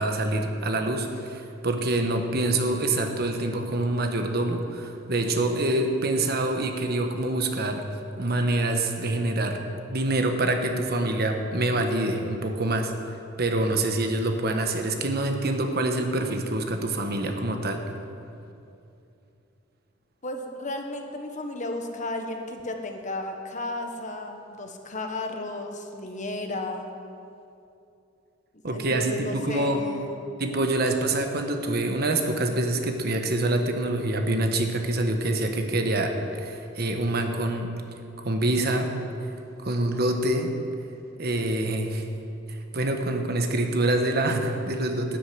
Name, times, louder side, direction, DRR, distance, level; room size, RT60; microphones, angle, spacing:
voice 1, 0.0-7.8 8.2-9.6 9.9-17.8 28.6-29.8 30.4-37.7 38.2-38.9 39.6-40.5 41.2-42.0 42.5-45.2, right 2 dB, 50° right, 5 dB, 1.3 m, -26 dB
voice 2, 20.2-26.9 28.7-30.3, left 2 dB, 40° left, 4 dB, 1.3 m, -34 dB
13.0 x 8.4 x 9.4 m, 2.7 s
head